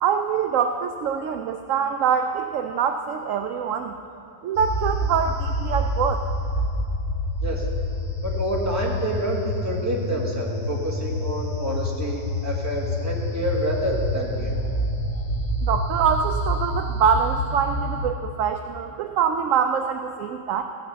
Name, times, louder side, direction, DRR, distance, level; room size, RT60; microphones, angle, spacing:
voice 1, 0.0-3.9 4.4-6.2 15.6-20.6, right 7 dB, 70° right, 6 dB, 0.7 m, -24 dB
sound 1, 4.5-18.1, left 1 dB, 35° left, 0.6 m, -27 dB
voice 2, 8.2-14.6, right 1 dB, 10° right, -3 dB, 1.6 m, -28 dB
15.0 x 6.7 x 6.8 m, 2.7 s
omnidirectional pair, 1.8 m